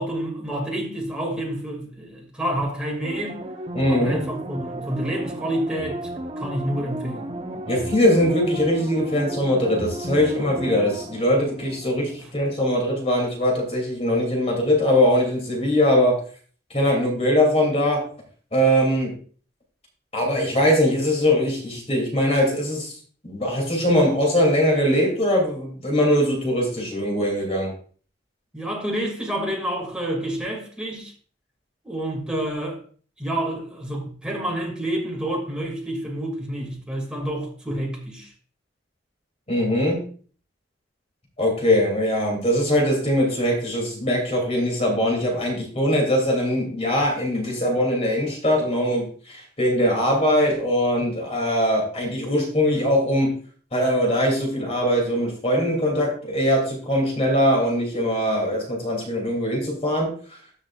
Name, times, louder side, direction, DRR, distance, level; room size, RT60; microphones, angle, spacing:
voice 1, 0.0-3.4 3.9-6.1 6.4-7.3 28.5-31.1 31.8-32.8 33.2-38.3, right 1 dB, 5° right, 2.4 m, -28 dB
sound 1, 3.0-12.4 12.8-12.9, right 1 dB, 30° right, 1.1 m, -34 dB
voice 2, 3.7-4.2 7.7-16.2 16.7-18.0 18.5-19.1 20.1-22.9 23.2-27.7 39.5-40.0 41.4-53.3 53.7-60.1, equal, 35° left, 3.0 m, -21 dB
13.5 x 6.3 x 2.5 m
head